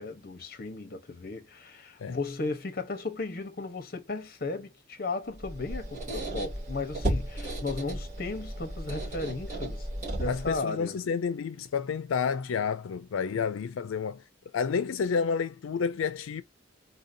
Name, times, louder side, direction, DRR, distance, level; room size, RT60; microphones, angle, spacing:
voice 1, 0.0-9.9 10.2-11.0 13.3-13.4, left 3 dB, 50° left, 0.9 m, -35 dB
Squeak, 5.4-10.6, right 1 dB, 40° right, 2.4 m, -34 dB
voice 2, 10.3-14.2 14.5-16.4, left 6 dB, 90° left, 0.4 m, -30 dB
4.0 x 2.7 x 2.5 m
head